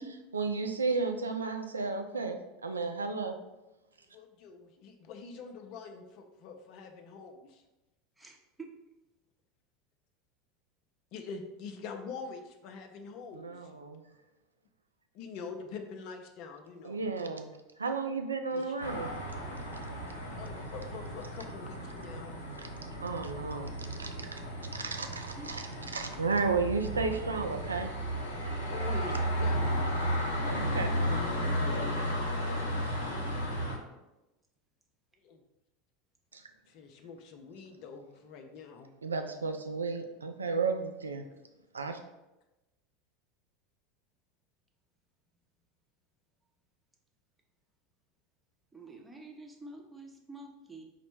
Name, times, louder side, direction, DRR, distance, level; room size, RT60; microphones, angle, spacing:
voice 1, 0.3-3.3 13.3-14.0 16.8-17.5 17.8-19.1 22.6-22.7 23.0-24.4 24.7-25.6 25.9-27.9 30.4-31.0 36.3-36.4 39.0-41.2 41.7-42.0, right 4 dB, 90° right, 6 dB, 0.4 m, -33 dB
voice 2, 4.1-7.6 11.1-13.8 15.1-17.1 18.5-18.7 20.4-22.5 28.3-30.0 35.2-35.4 36.7-38.9, left 5 dB, 55° left, 6 dB, 0.5 m, -45 dB
voice 3, 8.2-8.7 25.4-25.6 48.7-50.8, right 2 dB, 10° right, 1 dB, 0.8 m, -48 dB
sound 1, 18.8-33.8, equal, 85° left, 0.9 m, -34 dB
4.1 x 2.1 x 4.4 m, 1.0 s
hypercardioid pair, 80°, 0 cm